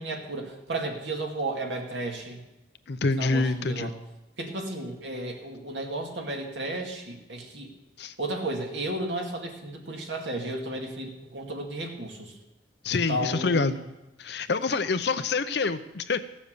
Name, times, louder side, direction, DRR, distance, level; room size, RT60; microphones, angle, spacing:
voice 1, 0.0-2.4 3.2-4.0 4.4-7.7 8.2-12.4 12.9-13.8, right 1 dB, 70° right, 1 dB, 2.3 m, -33 dB
voice 2, 2.9-3.9 8.0-8.1 12.8-13.8 14.2-16.2, left 3 dB, 60° left, 11 dB, 0.6 m, -26 dB
15.5 x 7.2 x 6.7 m, 0.97 s
head